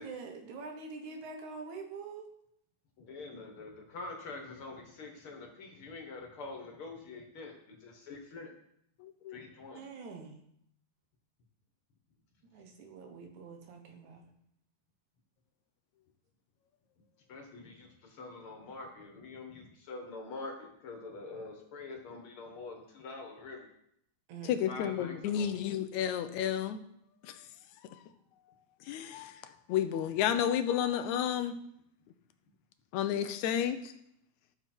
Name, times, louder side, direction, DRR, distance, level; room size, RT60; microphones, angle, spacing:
voice 1, 0.0-2.3 9.7-10.3 12.5-14.2 24.3-24.6, right 4 dB, 80° right, 3 dB, 2.8 m, -45 dB
voice 2, 3.0-8.5 9.3-9.8 17.3-23.7 24.7-25.6, left 3 dB, 50° left, 2 dB, 2.3 m, -45 dB
voice 3, 9.0-9.4 24.5-26.8 27.2-27.4 28.9-29.4 29.7-31.5 32.9-33.9, left 9 dB, 80° left, 10 dB, 2.1 m, -31 dB
13.0 x 6.8 x 4.5 m, 0.73 s
omnidirectional pair, 3.3 m